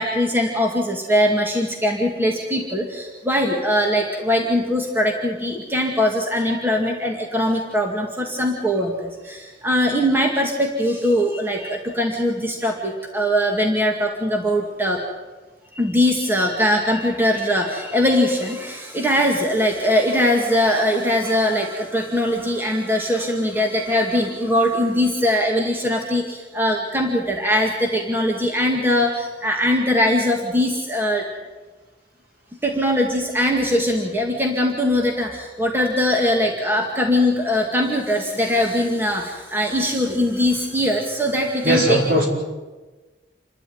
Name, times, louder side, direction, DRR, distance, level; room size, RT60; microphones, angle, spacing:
voice 1, 0.0-15.0 15.7-31.2 32.6-42.0, equal, 10° right, 0 dB, 2.2 m, -21 dB
voice 2, 41.6-42.3, right 1 dB, 55° right, -1 dB, 5.7 m, -18 dB
28.0 x 12.5 x 9.4 m, 1.2 s
head